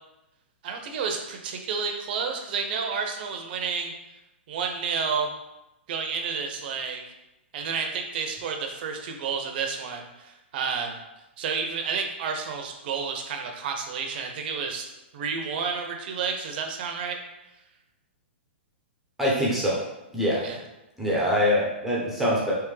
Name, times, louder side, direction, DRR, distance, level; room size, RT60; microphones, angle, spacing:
voice 1, 0.6-3.9 4.5-5.3 5.9-7.0 7.5-11.0 11.4-17.2 20.4-20.6, right 5 dB, 55° right, 3 dB, 0.7 m, -30 dB
voice 2, 19.2-19.8 20.1-20.4 21.0-22.5, equal, 5° right, -6 dB, 0.8 m, -24 dB
3.4 x 3.1 x 3.2 m, 0.94 s
hypercardioid pair, 135°, 6 cm